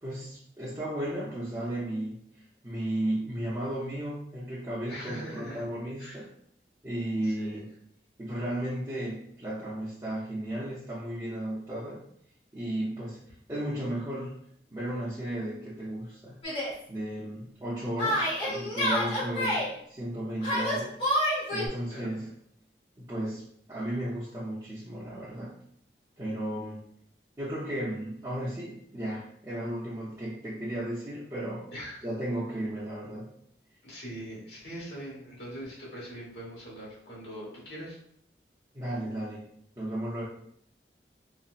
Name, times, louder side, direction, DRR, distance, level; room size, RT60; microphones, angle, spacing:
voice 1, 0.0-2.2 2.6-6.3 6.8-7.7 8.2-12.0 12.5-13.2 13.5-14.3 14.7-16.4 16.9-20.9 21.5-22.3 23.0-25.5 26.2-26.8 27.4-31.6 32.0-33.3 38.7-39.4 39.8-40.2, right 1 dB, 20° right, -10 dB, 0.6 m, -34 dB
voice 2, 4.9-5.6 6.0-6.2 7.2-7.6 21.9-22.1 31.7-32.0 33.8-38.0, equal, 70° left, -5 dB, 1.2 m, -42 dB
Yell, 16.4-16.7 18.0-19.7 20.4-21.7, equal, 30° left, 1.0 m, -28 dB
4.1 x 2.1 x 2.4 m, 0.67 s
head